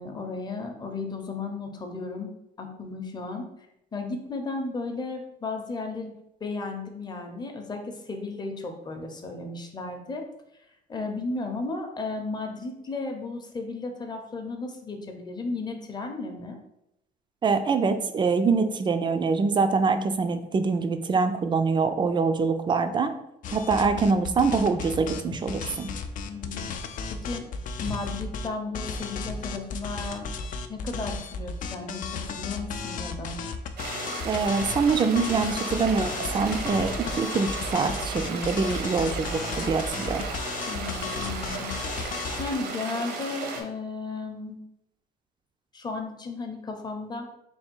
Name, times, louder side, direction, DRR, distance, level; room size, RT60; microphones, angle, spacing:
voice 1, 0.0-2.3 2.6-3.5 3.9-6.1 6.4-10.3 10.9-16.6 26.2-26.7 27.1-27.5 27.8-30.3 30.7-33.4 40.7-44.6 45.7-47.3, left 3 dB, 25° left, 3 dB, 0.7 m, -34 dB
voice 2, 17.4-23.1 23.5-25.9 34.2-40.3, right 4 dB, 30° right, 8 dB, 0.4 m, -24 dB
sound 1, 23.4-28.5 28.7-42.5, left 5 dB, 50° left, 0.4 m, -34 dB
Walk footsteps, 25.1-29.6, left 3 dB, 90° left, 0.8 m, -43 dB
sound 2, 33.8-43.6, right 3 dB, 70° right, 0.8 m, -35 dB
3.5 x 2.3 x 4.4 m, 0.82 s
cardioid pair, 110°, 17 cm